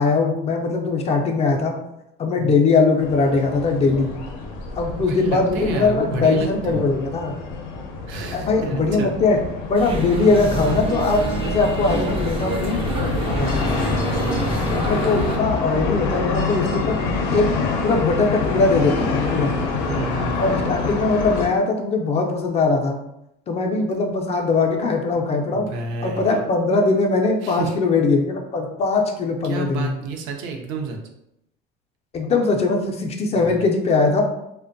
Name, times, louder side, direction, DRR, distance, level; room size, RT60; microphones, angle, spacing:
voice 1, 0.0-1.8 2.2-4.1 4.8-7.4 8.3-9.4 9.7-13.8 14.7-17.5 17.8-19.5 20.4-23.0 23.5-25.7 26.0-29.9 32.1-34.2, left 3 dB, 35° left, 3 dB, 0.4 m, -21 dB
sound 1, 3.0-21.5, left 4 dB, 90° left, 0.5 m, -27 dB
voice 2, 5.1-6.8 8.1-9.1 14.1-15.1 19.7-20.6 25.5-26.4 27.4-27.7 29.4-31.0 33.3-33.7, right 4 dB, 80° right, 2 dB, 0.5 m, -30 dB
sound 2, 9.7-15.4, right 1 dB, 30° right, 0.4 m, -26 dB
2.4 x 2.1 x 2.5 m, 0.82 s
cardioid pair, 115°, 19 cm